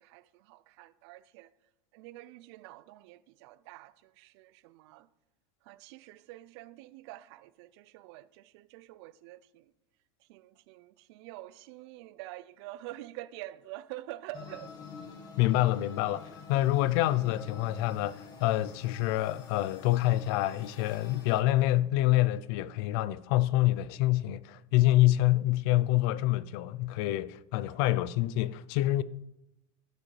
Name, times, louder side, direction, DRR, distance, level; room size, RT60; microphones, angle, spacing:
voice 1, 0.0-1.5 1.9-5.1 5.6-9.7 10.2-14.7 27.7-27.8, right 16 dB, 60° right, 0.5 m, -47 dB
sound 1, 14.3-21.4, left 5 dB, 25° left, 1.2 m, -48 dB
voice 2, 15.4-29.0, left 15 dB, 55° left, 0.4 m, -27 dB
13.5 x 7.5 x 3.2 m
supercardioid pair, 155°, 15 cm